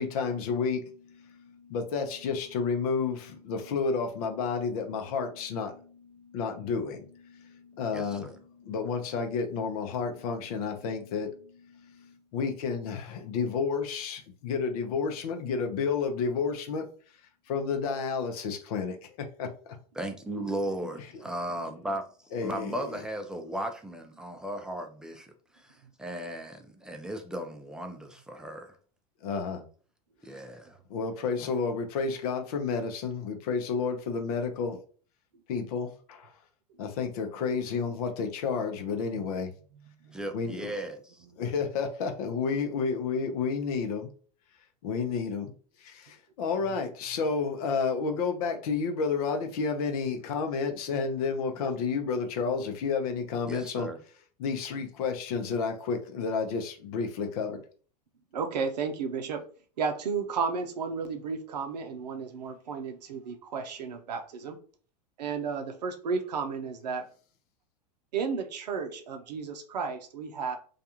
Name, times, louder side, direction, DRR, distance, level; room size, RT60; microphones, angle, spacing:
voice 1, 0.0-16.9 17.5-19.5 22.3-23.0 29.2-29.6 30.9-34.8 35.5-36.3 36.8-39.5 40.3-40.7 41.4-44.1 44.8-45.5 45.8-53.9 54.4-57.6, left 5 dB, 65° left, 0.6 m, -31 dB
voice 2, 7.9-8.4 20.0-22.0 22.4-25.7 26.0-28.8 30.2-30.8 40.1-41.2 53.5-54.0, right 1 dB, 5° right, 0.4 m, -36 dB
voice 3, 39.7-40.7 41.2-41.4 58.3-59.4 59.8-64.6 65.2-67.1 68.1-70.6, right 5 dB, 85° right, 0.5 m, -33 dB
2.4 x 2.3 x 2.8 m
hypercardioid pair, 95°, 21 cm